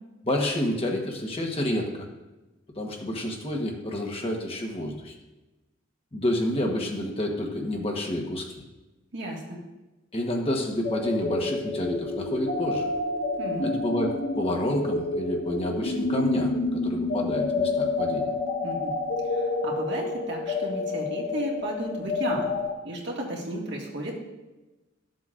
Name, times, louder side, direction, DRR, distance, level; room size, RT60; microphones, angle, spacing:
voice 1, 0.2-2.1 2.7-5.1 6.1-8.6 10.1-12.9 13.6-18.3, left 1 dB, 30° left, 1 dB, 1.2 m, -29 dB
voice 2, 9.1-9.6 13.4-13.6 18.6-18.9 19.3-22.5 22.8-24.1, right 1 dB, 60° right, -2 dB, 2.0 m, -33 dB
sound 1, 10.8-22.7, left 3 dB, 85° left, 1.2 m, -28 dB
14.0 x 7.7 x 2.5 m, 1.1 s
head